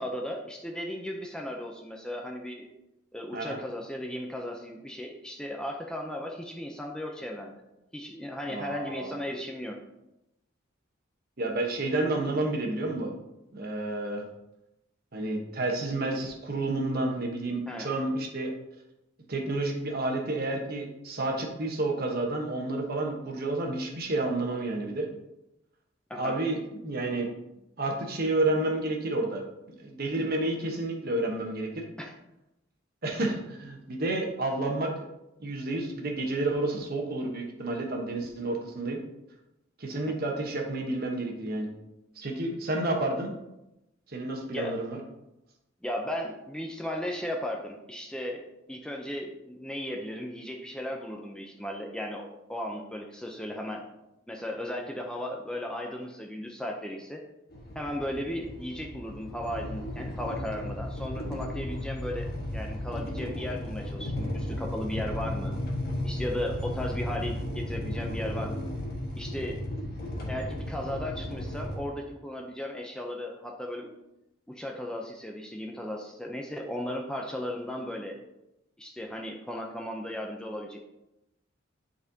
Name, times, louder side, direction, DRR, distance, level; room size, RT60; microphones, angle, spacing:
voice 1, 0.0-2.7 3.1-7.5 7.9-9.8 17.7-17.9 26.1-26.4 32.0-32.1 40.0-40.1 44.5-44.8 45.8-48.4 48.7-53.8 54.3-57.2 57.7-65.5 66.0-68.6 69.2-69.6 70.3-73.9 74.5-78.2 78.8-80.8, left 1 dB, 5° left, 1 dB, 0.5 m, -36 dB
voice 2, 8.5-9.2 11.4-13.1 13.5-14.2 15.1-18.5 19.3-25.1 26.1-27.3 27.8-31.8 33.0-35.0 35.4-39.0 39.8-41.7 42.2-43.3 44.1-45.0, right 2 dB, 50° right, 2 dB, 1.1 m, -30 dB
sound 1, 57.5-71.8, left 1 dB, 50° left, 1.4 m, -35 dB
10.5 x 4.2 x 2.8 m, 0.91 s
head